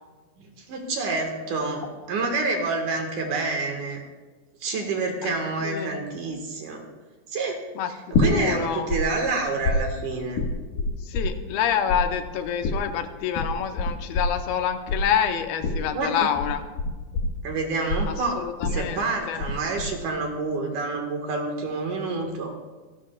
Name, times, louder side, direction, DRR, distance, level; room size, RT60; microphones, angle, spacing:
voice 1, 0.4-4.0 4.6-6.8 7.3-7.6 7.9-10.4 15.9-16.3 17.4-22.5, right 3 dB, 60° right, 2 dB, 2.8 m, -28 dB
voice 2, 5.6-5.9 7.8-8.9 11.1-16.6 18.1-19.4, left 9 dB, 90° left, 7 dB, 2.7 m, -27 dB
sound 1, 8.1-9.0 9.3-11.6 11.9-19.5 19.8-20.3, left 3 dB, 70° left, 3.3 m, -26 dB
26.0 x 12.5 x 2.3 m, 1.3 s
omnidirectional pair, 4.3 m